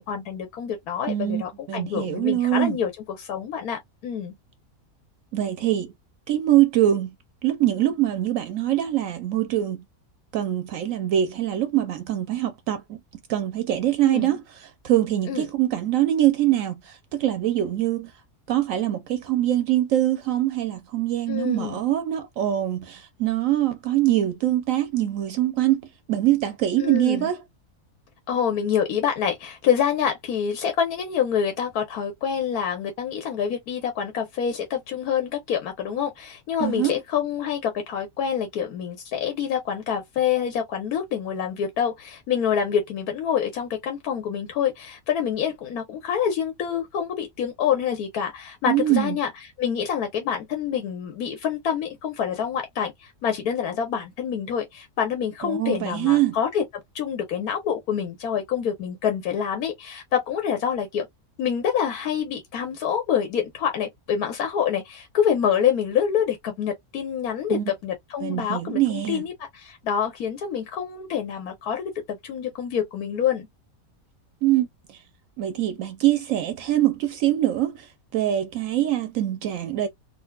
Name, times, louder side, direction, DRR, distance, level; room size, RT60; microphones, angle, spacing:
voice 1, 0.0-2.9 3.2-4.3 14.0-14.4 15.3-15.4 21.3-21.8 26.8-27.3 28.3-49.3 49.6-56.6 56.9-61.1 61.4-73.5, left 8 dB, 90° left, 1.4 m, -26 dB
voice 2, 1.1-1.4 1.7-2.8 5.3-5.9 6.3-7.1 7.4-9.8 10.3-13.0 13.3-18.1 18.5-27.4 36.6-36.9 48.7-49.2 55.4-56.3 67.5-67.7 68.2-69.2 74.4-75.0 75.4-77.9 78.1-79.9, right 13 dB, 70° right, 0.9 m, -23 dB
3.8 x 2.4 x 2.3 m
omnidirectional pair, 1.5 m